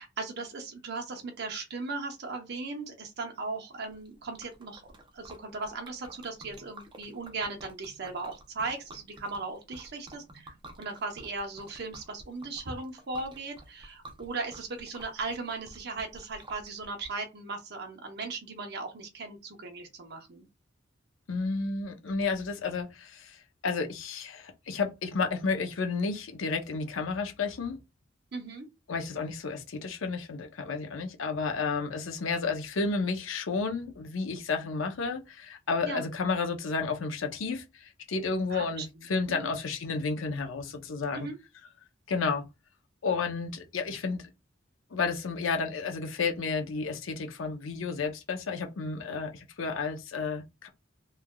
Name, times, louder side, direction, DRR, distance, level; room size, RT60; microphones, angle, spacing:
voice 1, 0.0-4.8 5.1-20.4 28.3-28.7 35.8-36.1 38.5-38.9 39.3-39.5 41.1-41.4, right 3 dB, 55° right, 0.8 m, -37 dB
Liquid, 3.9-17.1, right 1 dB, 25° right, 0.5 m, -52 dB
voice 2, 21.3-27.8 28.9-41.3 42.1-42.4 43.0-44.2 44.9-50.7, left 4 dB, 90° left, 0.6 m, -31 dB
3.2 x 2.3 x 2.2 m
head